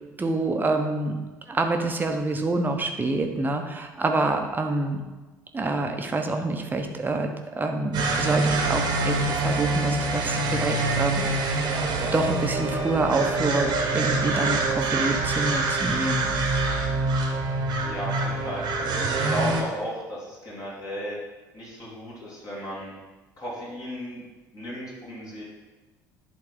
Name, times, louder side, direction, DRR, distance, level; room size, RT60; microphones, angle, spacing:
voice 1, 0.2-1.2 1.5-5.0 5.5-7.3 7.6-11.7 12.1-16.4, right 2 dB, 20° right, 4 dB, 0.9 m, -27 dB
sound 1, 7.9-19.6, right 2 dB, 45° right, 1.2 m, -25 dB
voice 2, 17.8-18.6 19.0-21.2 21.5-22.9 23.4-24.2 24.5-25.4, equal, 35° left, -5 dB, 2.4 m, -34 dB
10.5 x 4.1 x 3.7 m, 1.2 s
figure-of-eight pair, 55°, 10 cm